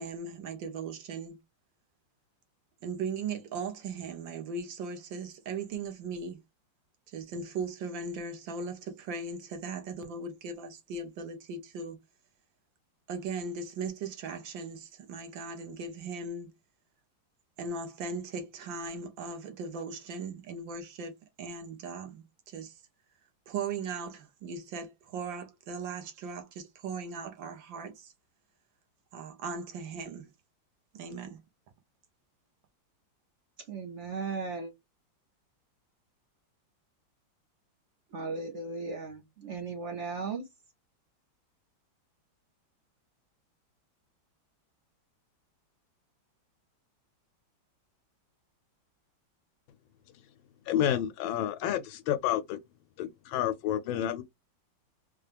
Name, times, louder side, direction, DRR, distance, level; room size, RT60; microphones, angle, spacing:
voice 1, 0.0-1.4 2.8-6.4 7.1-12.0 13.1-16.5 17.6-21.1 21.4-22.2 22.5-22.7 23.5-28.1 29.1-30.3 30.9-31.4, right 4 dB, 75° right, 1.6 m, -38 dB
voice 2, 33.7-34.7 38.1-40.4, right 4 dB, 50° right, 0.9 m, -36 dB
voice 3, 50.7-52.6 53.0-54.2, left 11 dB, 90° left, 1.4 m, -29 dB
4.4 x 2.3 x 3.3 m
omnidirectional pair, 2.1 m